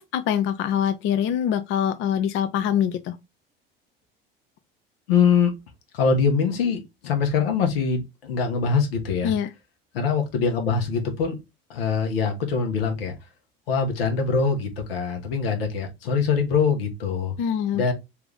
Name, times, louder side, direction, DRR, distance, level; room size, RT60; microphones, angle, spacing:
voice 1, 0.0-3.2 9.2-9.5 17.4-17.9, left 9 dB, 40° left, 0.5 m, -24 dB
voice 2, 5.1-5.5 5.9-9.3 9.9-11.4 11.7-13.1 13.7-17.3 17.7-17.9, left 5 dB, 75° left, 1.1 m, -23 dB
3.4 x 2.5 x 3.2 m
hypercardioid pair, 70°, 30 cm